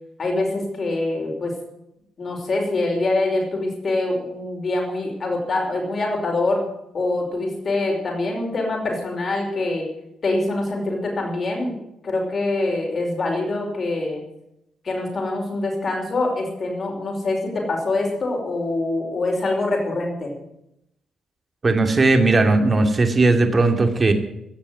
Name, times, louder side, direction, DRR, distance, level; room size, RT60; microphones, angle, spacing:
voice 1, 0.2-1.5 2.2-6.7 6.9-9.9 10.2-11.7 12.0-14.2 14.8-20.3, left 2 dB, 45° left, 1 dB, 5.4 m, -24 dB
voice 2, 21.6-24.1, right 3 dB, 30° right, 6 dB, 2.5 m, -17 dB
16.5 x 7.1 x 9.6 m, 0.83 s
cardioid pair, 90°, 0 cm